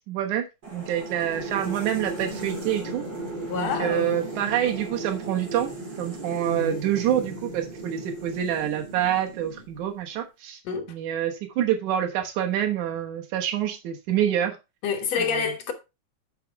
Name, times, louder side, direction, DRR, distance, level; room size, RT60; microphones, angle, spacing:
voice 1, 0.1-0.5 0.7-3.0 3.6-5.7 6.0-10.6 10.9-14.6 15.2-15.3, right 10 dB, 85° right, 2.7 m, -27 dB
sound 1, 0.6-10.0, right 2 dB, 35° right, 3.3 m, -36 dB
voice 2, 3.5-4.3 6.5-6.8 10.6-10.9 14.8-15.7, left 6 dB, 65° left, 2.7 m, -28 dB
9.2 x 5.1 x 4.6 m
omnidirectional pair, 3.3 m